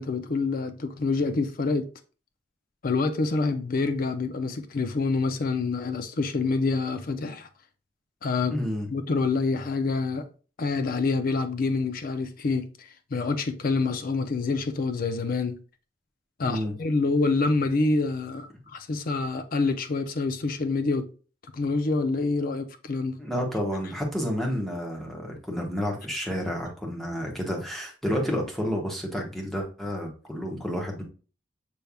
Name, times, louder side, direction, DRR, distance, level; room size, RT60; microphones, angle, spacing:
voice 1, 0.0-1.9 2.8-7.5 8.2-8.5 8.9-10.3 10.6-15.6 16.4-21.1 21.5-23.2, left 3 dB, 50° left, 0.5 m, -27 dB
voice 2, 8.5-8.9 16.4-16.7 23.2-31.0, equal, ahead, 1.1 m, -30 dB
6.8 x 3.3 x 2.3 m
head